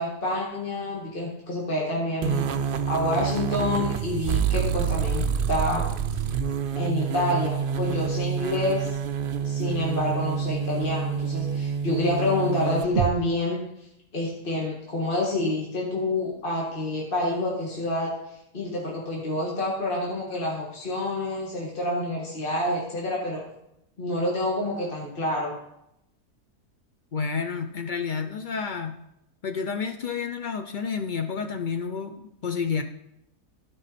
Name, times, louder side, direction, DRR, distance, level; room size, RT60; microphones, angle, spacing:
voice 1, 0.0-2.5 2.9-5.8 6.8-9.0 9.4-13.6 14.1-18.1 18.5-23.4 24.0-25.5, left 1 dB, 35° left, -3 dB, 2.0 m, -28 dB
sound 1, 2.2-13.1, right 7 dB, 80° right, 0.4 m, -27 dB
voice 2, 27.1-28.9 29.4-32.8, left 5 dB, 75° left, 7 dB, 0.4 m, -30 dB
15.5 x 5.5 x 4.2 m, 0.82 s
omnidirectional pair, 1.7 m